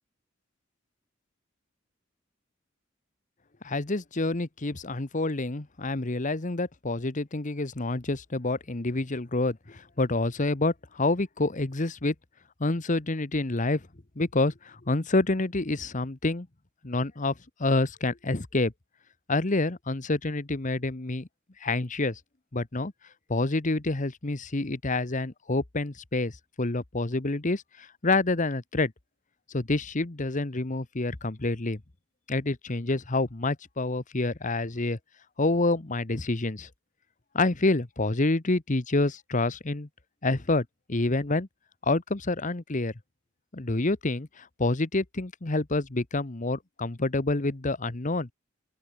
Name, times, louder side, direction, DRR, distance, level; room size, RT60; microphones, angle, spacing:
voice 1, 3.6-12.1 12.6-13.8 14.2-16.5 16.8-17.3 17.6-18.7 19.3-21.3 21.6-22.2 22.5-22.9 23.3-26.3 26.6-28.9 29.5-31.8 32.3-35.0 35.4-36.7 37.3-39.9 40.2-41.5 41.8-42.9 43.5-48.3, left 2 dB, 40° left, 1.2 m, -27 dB
open air
head